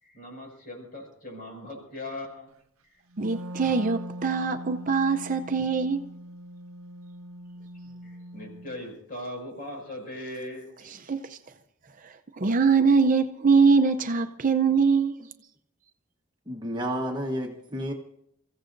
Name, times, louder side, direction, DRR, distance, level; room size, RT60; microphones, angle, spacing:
voice 1, 0.0-2.5 2.8-3.0 8.0-11.0, left 1 dB, 40° left, 6.0 m, -39 dB
Wind instrument woodwind instrument, 3.1-8.8, right 1 dB, 75° right, 0.8 m, -41 dB
voice 2, 3.2-6.0 11.1-11.4 12.0-15.2, right 5 dB, 40° right, 0.6 m, -23 dB
voice 3, 16.5-17.9, equal, 20° right, 1.2 m, -31 dB
29.5 x 15.5 x 2.6 m
head